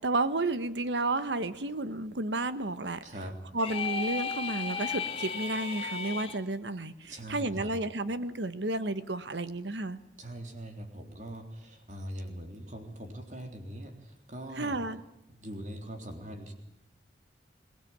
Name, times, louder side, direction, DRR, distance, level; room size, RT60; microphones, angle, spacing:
voice 1, 0.0-3.0 3.5-10.0 14.6-15.0, right 2 dB, 90° right, 12 dB, 1.3 m, -32 dB
voice 2, 3.0-3.4 7.1-7.7 10.2-14.8 15.4-16.5, right 1 dB, 45° right, 4 dB, 3.5 m, -42 dB
sound 1, 3.6-6.4, left 5 dB, 35° left, 1.9 m, -34 dB
22.5 x 19.0 x 8.9 m, 0.88 s
head